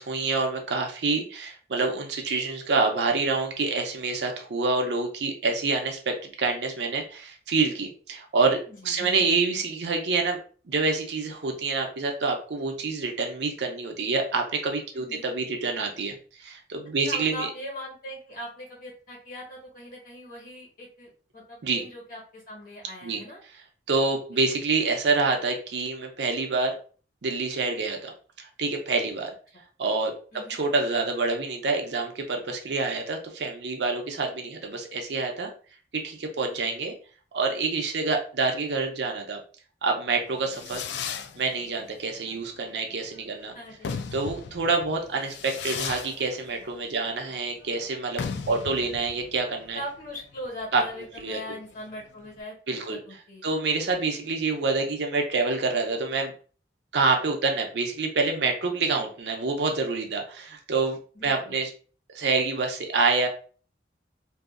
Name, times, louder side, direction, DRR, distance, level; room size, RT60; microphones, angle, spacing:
voice 1, 0.0-10.4 10.7-17.5 21.6-21.8 23.0-23.2 23.9-26.8 27.2-28.1 28.4-29.3 29.8-30.1 30.5-35.5 35.9-36.9 37.3-39.4 39.8-40.8 41.4-43.5 44.1-49.8 50.7-50.8 51.2-51.4 52.7-53.0 53.4-56.3 56.9-61.7 62.1-63.3, right 3 dB, 70° right, 3 dB, 0.6 m, -27 dB
voice 2, 8.7-9.1 14.9-15.2 17.0-23.4 24.3-24.4 30.3-30.6 43.5-43.9 48.3-48.7 49.7-52.5 53.1-53.4 61.1-61.6, left 1 dB, 50° left, -4 dB, 1.3 m, -40 dB
Fireworks, 40.2-52.4, left 6 dB, 75° left, 0.3 m, -38 dB
2.7 x 2.3 x 2.4 m, 0.40 s
head